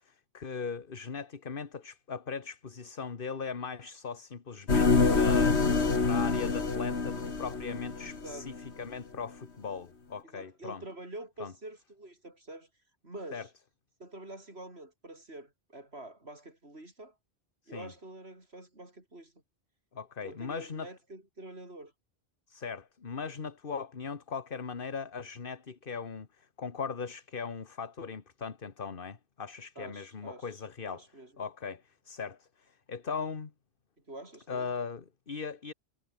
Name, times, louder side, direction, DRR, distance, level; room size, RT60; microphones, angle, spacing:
voice 1, 0.0-10.8 11.4-11.5 13.3-13.5 17.7-17.9 19.9-20.9 22.5-31.1 31.4-33.5 34.5-35.7, left 5 dB, 55° left, 1.6 m, -39 dB
sound 1, 4.7-8.7, left 4 dB, 80° left, 2.5 m, -26 dB
voice 2, 8.0-8.5 10.2-12.7 13.0-13.5 14.0-17.1 17.7-19.3 20.2-21.9 29.8-30.5 30.9-31.3 34.1-34.7, right 1 dB, 70° right, 6.6 m, -46 dB
omnidirectional pair, 1.1 m